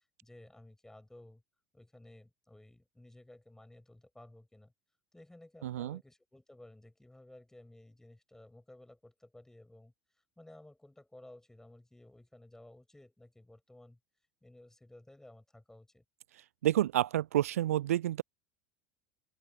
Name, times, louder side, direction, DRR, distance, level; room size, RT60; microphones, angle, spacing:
voice 1, 0.2-1.4 1.7-4.7 5.1-9.9 10.4-14.0 14.4-16.0, left 1 dB, 5° left, 7.4 m, -56 dB
voice 2, 5.6-6.0 16.6-18.2, right 13 dB, 70° right, 0.5 m, -29 dB
open air
figure-of-eight pair, 75°, 8 cm